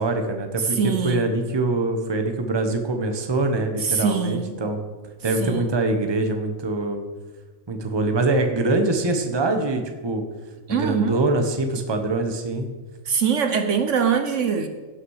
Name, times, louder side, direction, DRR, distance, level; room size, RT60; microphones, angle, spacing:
voice 1, 0.0-4.8 5.2-7.0 7.7-10.2 10.7-12.7, right 2 dB, 20° right, 5 dB, 0.9 m, -24 dB
voice 2, 0.7-1.3 3.8-4.5 5.4-5.7 10.7-11.2 13.1-14.7, right 6 dB, 65° right, 7 dB, 1.1 m, -23 dB
17.0 x 5.8 x 4.9 m, 1.3 s
omnidirectional pair, 1.4 m